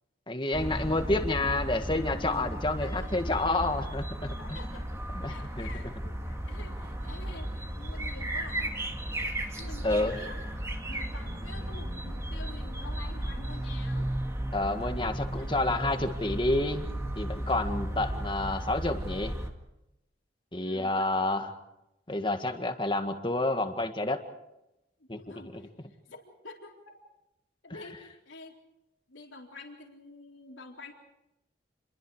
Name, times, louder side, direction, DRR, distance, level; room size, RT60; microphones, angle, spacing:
voice 1, 0.3-4.6 5.1-5.7 9.8-10.2 14.5-16.9 17.2-19.4 20.5-21.5 22.1-24.2 25.1-25.2 25.5-25.6 27.7-27.8, left 2 dB, 25° left, 6 dB, 1.8 m, -29 dB
sound 1, 0.5-19.5, right 1 dB, 15° right, 2.1 m, -35 dB
voice 2, 2.8-3.1 4.4-4.8 5.3-8.8 9.6-10.4 10.9-14.1 15.0-15.7 20.6-21.2 25.0-27.0 27.6-28.6 29.1-30.9, left 3 dB, 90° left, 1 dB, 3.9 m, -48 dB
29.0 x 22.5 x 4.9 m, 0.90 s
head